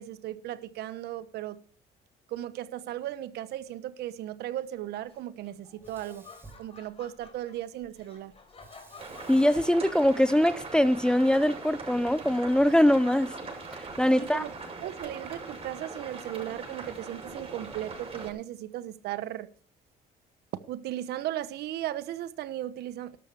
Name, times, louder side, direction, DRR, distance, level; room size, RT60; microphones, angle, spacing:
voice 1, 0.0-1.6 2.3-6.3 6.6-8.3 14.1-14.5 14.8-19.5 20.7-23.2, right 13 dB, 75° right, 1.0 m, -36 dB
Laughter, 5.0-15.1, left 4 dB, 35° left, 4.3 m, -54 dB
Sink (filling or washing), 5.8-7.4 8.6-10.8, right 3 dB, 15° right, 3.2 m, -54 dB
sound 1, 9.0-18.3, right 3 dB, 35° right, 6.3 m, -41 dB
voice 2, 9.3-13.4 13.7-14.4, left 1 dB, 5° left, 0.7 m, -23 dB
12.5 x 12.5 x 4.8 m
cardioid pair, 110°, 17 cm